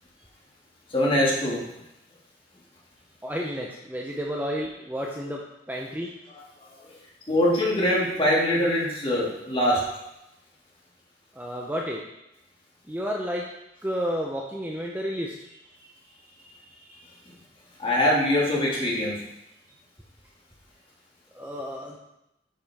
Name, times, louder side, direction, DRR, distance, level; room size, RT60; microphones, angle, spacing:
voice 1, 0.9-1.6 7.3-9.9 17.8-19.2, left 1 dB, 30° left, -5 dB, 2.1 m, -23 dB
voice 2, 3.2-5.4 5.7-6.1 11.4-12.0 12.9-13.5 13.8-15.3 15.7-15.8 16.4-17.0 21.3-22.0, equal, 10° right, -1 dB, 0.7 m, -31 dB
8.6 x 5.6 x 3.5 m, 0.86 s
head